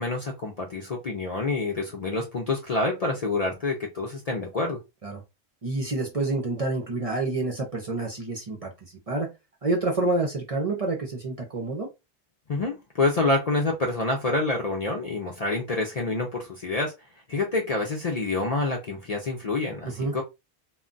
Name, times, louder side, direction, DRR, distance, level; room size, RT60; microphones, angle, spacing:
voice 1, 0.0-4.8 12.5-16.9 17.3-20.2, left 3 dB, 50° left, 0.5 m, -27 dB
voice 2, 5.6-8.7 9.1-9.3 9.6-11.9 20.0-20.1, right 2 dB, 40° right, 0.5 m, -28 dB
2.3 x 2.1 x 3.8 m
omnidirectional pair, 1.1 m